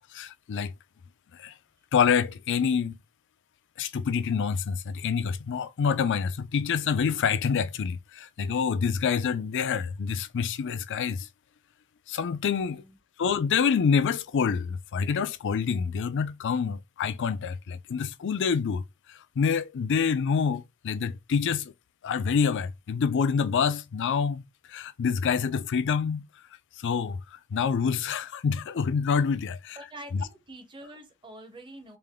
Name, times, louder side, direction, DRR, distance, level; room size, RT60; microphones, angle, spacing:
voice 1, 0.2-0.7 1.9-2.9 3.8-4.8 5.0-8.0 8.4-11.2 12.1-12.8 13.2-18.8 19.4-21.6 22.0-24.4 24.7-26.2 26.8-27.2 27.5-29.8 30.1-30.2, left 6 dB, 55° left, 0.4 m, -26 dB
voice 2, 12.6-13.0 29.8-32.0, right 1 dB, 20° right, 0.8 m, -46 dB
3.3 x 2.5 x 3.6 m
head